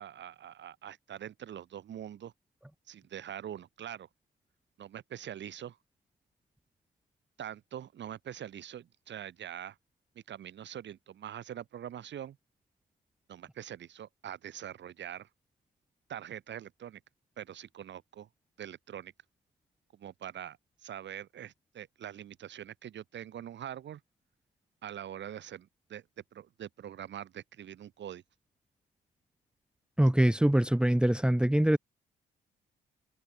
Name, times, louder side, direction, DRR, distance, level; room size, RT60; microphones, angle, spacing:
voice 1, 0.0-2.3 2.9-4.1 4.8-5.8 7.4-9.8 10.3-12.4 13.3-15.3 16.1-17.0 17.4-18.3 18.6-19.1 19.9-20.6 20.8-24.0 24.8-26.0 26.3-28.2, right 10 dB, 65° right, 3.8 m, -43 dB
voice 2, 30.0-31.8, right 1 dB, 5° right, 1.5 m, -24 dB
cardioid pair, 90°, 20 cm